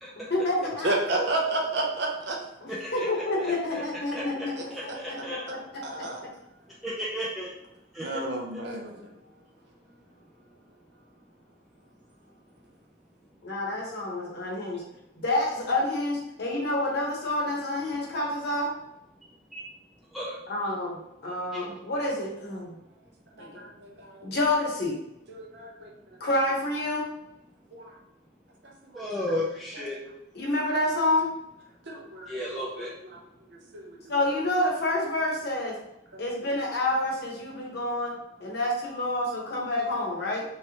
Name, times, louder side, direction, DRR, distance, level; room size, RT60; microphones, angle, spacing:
voice 1, 0.3-0.9 1.2-1.3 2.6-5.4 13.4-14.8 15.2-18.7 20.5-21.0 21.2-22.7 23.4-23.5 24.2-24.9 26.2-27.0 30.3-31.3 34.1-35.7 36.2-38.1 38.4-40.4, left 1 dB, 55° left, -2 dB, 0.8 m, -28 dB
voice 2, 0.8-2.4 4.6-5.6 5.8-6.2 8.0-9.1 23.4-24.3 25.3-25.9 27.7-27.9 28.6-29.1 29.7-29.8 31.9-32.9 33.1-33.2 33.5-34.2 36.1-36.2, right 2 dB, 55° right, 0 dB, 0.6 m, -33 dB
voice 3, 2.8-3.8 4.1-4.5 4.7-5.4 6.8-7.5 7.9-8.2 19.5-19.6 20.1-20.4 21.5-21.6 28.9-30.0 32.3-32.9, left 1 dB, ahead, -7 dB, 0.3 m, -34 dB
3.1 x 2.9 x 2.8 m, 0.86 s
head